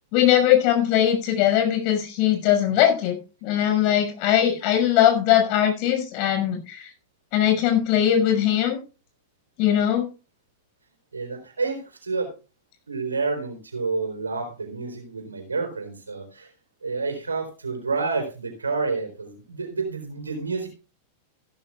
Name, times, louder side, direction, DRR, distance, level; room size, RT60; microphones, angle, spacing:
voice 1, 0.1-6.9 7.3-8.8 9.6-10.1, left 11 dB, 50° left, 4 dB, 6.1 m, -20 dB
voice 2, 11.1-12.4 12.9-16.5 16.8-20.7, right 4 dB, 90° right, 4 dB, 4.0 m, -29 dB
15.0 x 13.0 x 2.4 m, 0.32 s
hypercardioid pair, 95°, 0 cm